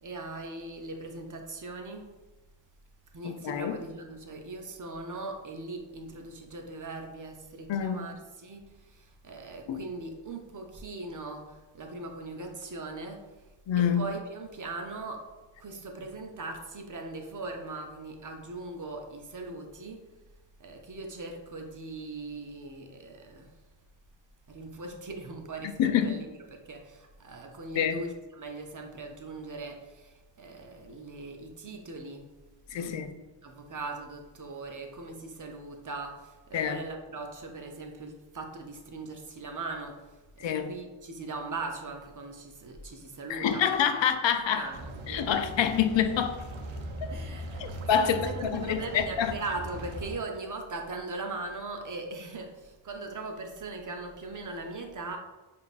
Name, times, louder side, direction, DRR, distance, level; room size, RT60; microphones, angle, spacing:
voice 1, 0.0-2.1 3.1-13.5 13.8-20.1 20.6-23.6 24.5-32.3 32.7-33.1 33.4-43.8 44.5-45.3 47.1-55.2, right 3 dB, 40° right, 0.6 m, -40 dB
voice 2, 3.2-3.8 7.7-8.1 9.7-9.8 13.7-14.1 25.8-26.2 27.8-28.0 32.7-33.2 36.5-36.8 40.4-40.7 43.3-44.7 45.1-46.4 47.0-47.1 47.6-49.3, left 8 dB, 70° left, 0.5 m, -27 dB
sound 1, 44.7-50.2, right 1 dB, 80° right, 0.6 m, -40 dB
5.1 x 2.6 x 2.4 m
wide cardioid pair, 75°, 47 cm